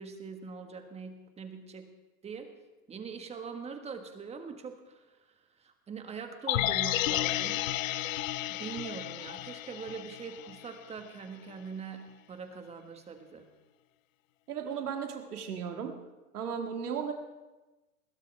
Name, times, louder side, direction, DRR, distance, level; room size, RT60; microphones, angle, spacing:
voice 1, 0.0-1.9 2.2-2.5 2.9-7.7 8.5-13.5, right 5 dB, 15° right, 6 dB, 1.4 m, -43 dB
sound 1, 6.5-10.7 11.0-11.1, left 15 dB, 60° left, 0.6 m, -32 dB
voice 2, 14.5-15.9 16.3-17.1, right 7 dB, 80° right, 4 dB, 2.0 m, -35 dB
21.0 x 15.5 x 3.4 m, 1.1 s
hypercardioid pair, 130°, 45 cm